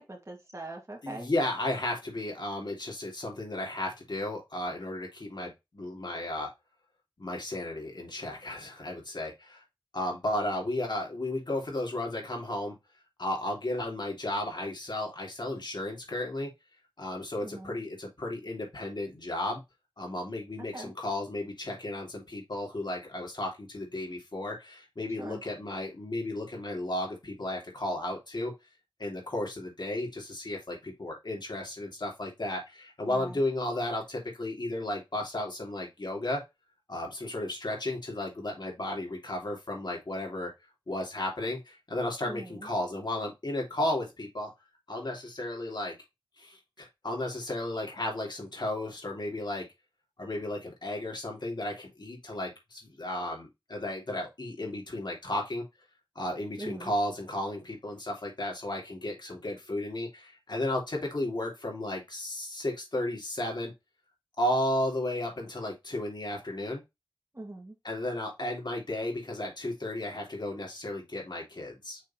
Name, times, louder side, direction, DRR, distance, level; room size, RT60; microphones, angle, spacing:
voice 1, 0.0-1.3 17.4-17.8 20.7-20.9 25.2-25.4 33.0-33.4 42.2-42.7 56.6-56.9 67.3-67.8, right 2 dB, 35° right, 0 dB, 2.2 m, -42 dB
voice 2, 1.0-6.5 7.2-9.6 9.9-12.7 13.2-16.5 17.0-19.6 20.0-28.5 29.0-36.4 36.9-40.5 40.9-44.5 44.9-46.0 46.4-49.7 50.2-55.6 56.1-63.7 64.4-66.8 67.8-72.0, left 1 dB, 60° left, -1 dB, 3.1 m, -34 dB
6.3 x 3.7 x 4.3 m, 0.22 s
wide cardioid pair, 50°, 8 cm